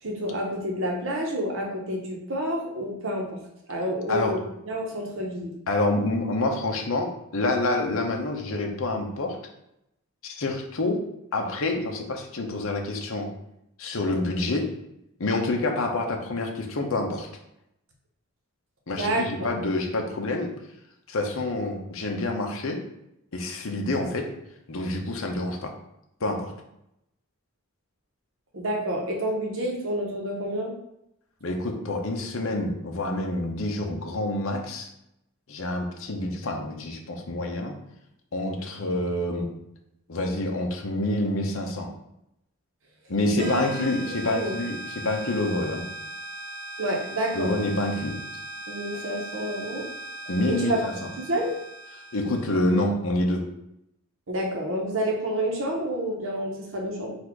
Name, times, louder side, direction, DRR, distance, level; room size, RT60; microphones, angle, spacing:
voice 1, 0.0-3.4 3.7-5.5 18.9-19.5 28.5-30.7 43.3-44.6 46.8-47.5 48.7-49.9 50.5-50.8 51.2-51.5 54.3-57.2, right 1 dB, 65° right, -1 dB, 1.0 m, -29 dB
voice 2, 5.7-9.4 10.2-11.0 11.3-13.3 13.8-14.6 15.2-17.3 18.9-20.5 21.1-22.8 23.3-24.3 24.7-25.7 26.2-26.5 31.4-34.9 35.5-37.7 38.3-39.5 40.1-41.9 43.1-45.8 47.3-48.2 50.3-51.1 52.1-53.4, left 2 dB, 70° left, 2 dB, 0.8 m, -27 dB
sound 1, 43.4-52.8, right 1 dB, 90° right, 1.2 m, -39 dB
4.1 x 2.5 x 4.6 m, 0.82 s
head